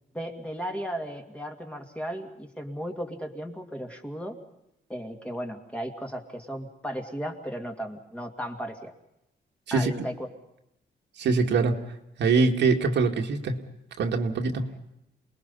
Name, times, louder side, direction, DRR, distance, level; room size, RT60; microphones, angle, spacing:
voice 1, 0.1-4.4 4.9-8.9 9.7-10.3, equal, 5° left, 3 dB, 2.3 m, -35 dB
voice 2, 11.2-11.8 12.2-13.6 14.0-14.7, right 4 dB, 80° right, 3 dB, 2.3 m, -23 dB
28.5 x 21.0 x 5.6 m, 0.84 s
wide cardioid pair, 155°, 18 cm